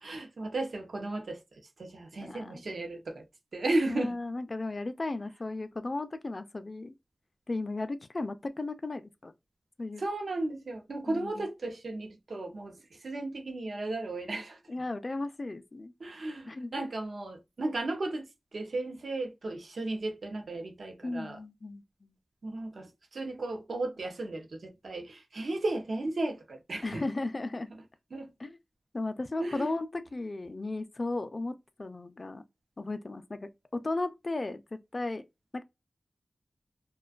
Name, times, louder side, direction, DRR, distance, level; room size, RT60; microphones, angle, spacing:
voice 1, 0.0-3.2 3.5-4.2 10.0-14.6 16.0-18.2 18.5-21.4 22.4-27.0 28.1-28.3 29.4-29.7, right 2 dB, 75° right, 0.7 m, -35 dB
voice 2, 2.2-2.6 3.9-6.9 7.5-9.3 9.8-10.0 11.1-11.4 14.7-15.9 16.5-16.9 21.0-22.1 26.8-27.7 28.4-28.6 28.9-32.4 32.8-35.2 35.5-35.6, left 2 dB, 45° left, 0.4 m, -35 dB
2.5 x 2.2 x 2.3 m
cardioid pair, 55°, 0 cm